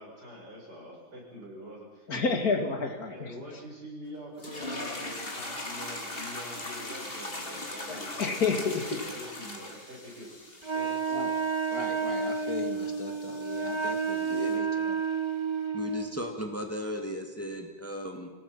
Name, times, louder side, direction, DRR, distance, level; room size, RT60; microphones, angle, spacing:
voice 1, 0.0-2.1 2.4-2.5 3.1-11.0, equal, 85° right, -3 dB, 7.7 m, -45 dB
voice 2, 2.1-3.3 7.9-9.0 11.1-11.3 11.7-15.0, left 4 dB, 65° left, 5 dB, 2.7 m, -32 dB
sound 1, 4.4-14.6, left 2 dB, 35° left, 2.9 m, -41 dB
Wind instrument woodwind instrument, 10.6-16.2, right 5 dB, 20° right, 1.0 m, -30 dB
voice 3, 14.1-14.5 15.7-18.3, equal, 10° left, 2 dB, 2.4 m, -36 dB
27.0 x 18.0 x 5.9 m, 1.2 s
omnidirectional pair, 1.7 m